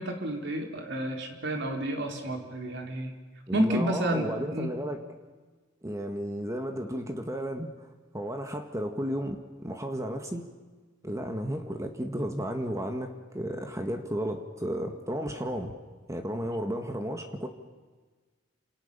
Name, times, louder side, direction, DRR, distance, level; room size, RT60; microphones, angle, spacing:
voice 1, 0.0-3.1 3.5-4.7, right 1 dB, 60° right, 3 dB, 4.2 m, -30 dB
voice 2, 3.5-5.0 5.8-7.7 8.1-10.4 11.0-15.7 16.1-17.5, equal, 15° right, 5 dB, 1.9 m, -33 dB
28.5 x 28.0 x 7.0 m, 1.4 s
head